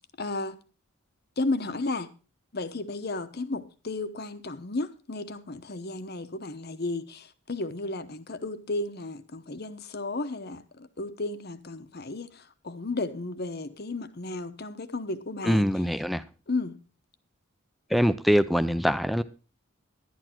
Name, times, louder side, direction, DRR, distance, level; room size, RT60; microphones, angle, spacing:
voice 1, 0.2-0.6 1.4-2.1 2.5-15.7 16.5-16.8, left 2 dB, 50° left, 1.0 m, -33 dB
voice 2, 15.4-16.2 17.9-19.2, equal, ahead, 0.6 m, -23 dB
11.5 x 11.0 x 4.5 m
head